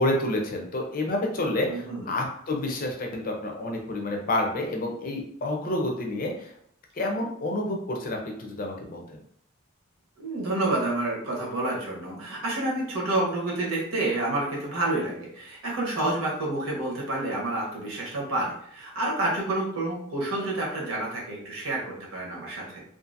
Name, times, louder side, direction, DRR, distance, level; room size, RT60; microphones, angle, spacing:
voice 1, 0.0-6.5 7.0-9.2, left 1 dB, 40° left, 1 dB, 0.5 m, -29 dB
voice 2, 1.7-2.1 10.2-22.8, right 2 dB, 85° right, -3 dB, 1.0 m, -29 dB
2.6 x 2.6 x 2.5 m, 0.67 s
head